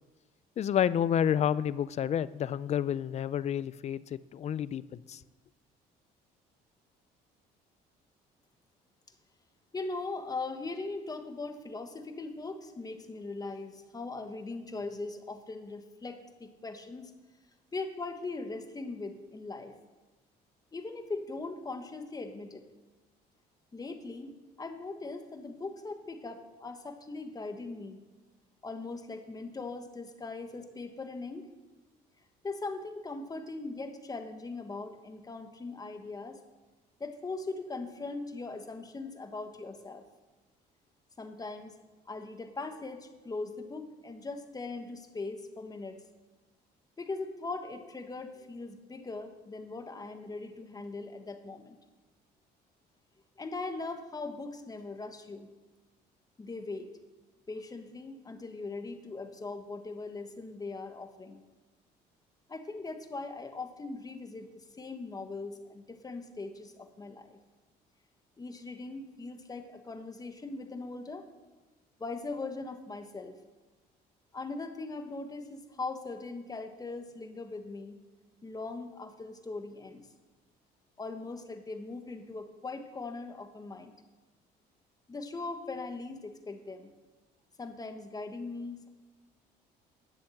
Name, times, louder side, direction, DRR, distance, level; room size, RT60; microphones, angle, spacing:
voice 1, 0.6-5.2, left 9 dB, 40° left, 18 dB, 0.4 m, -30 dB
voice 2, 9.7-17.1 17.7-19.7 20.7-22.6 23.7-28.0 28.6-31.5 32.4-36.4 37.0-40.0 41.2-41.8 42.1-46.0 47.0-51.8 53.4-55.5 56.4-56.9 57.5-61.4 62.5-67.4 68.4-71.2 72.0-73.3 74.3-78.0 78.4-80.1 81.0-84.0 85.1-86.9 87.6-88.9, left 3 dB, 20° left, 7 dB, 1.3 m, -40 dB
11.0 x 7.0 x 7.8 m, 1.2 s
cardioid pair, 110°, 17 cm